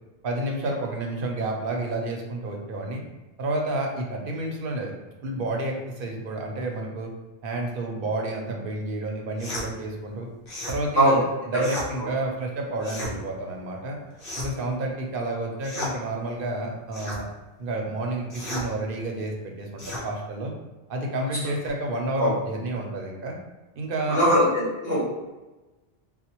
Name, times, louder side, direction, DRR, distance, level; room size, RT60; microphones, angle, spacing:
voice 1, 0.2-3.0 3.4-4.9 5.2-7.1 7.4-10.3 10.7-14.0 14.4-17.2 17.6-20.5 20.9-23.4 23.8-24.2, right 2 dB, 65° right, 1 dB, 0.8 m, -30 dB
sound 1, 9.4-9.7 10.5-10.8 11.6-11.9 12.8-13.1 14.2-14.6 15.6-16.0 16.9-17.2 18.3-18.7 19.8-20.1, left 1 dB, 60° left, 1.0 m, -33 dB
voice 2, 24.1-25.0, equal, 40° left, -9 dB, 1.4 m, -20 dB
4.2 x 2.1 x 2.9 m, 1.1 s
omnidirectional pair, 1.0 m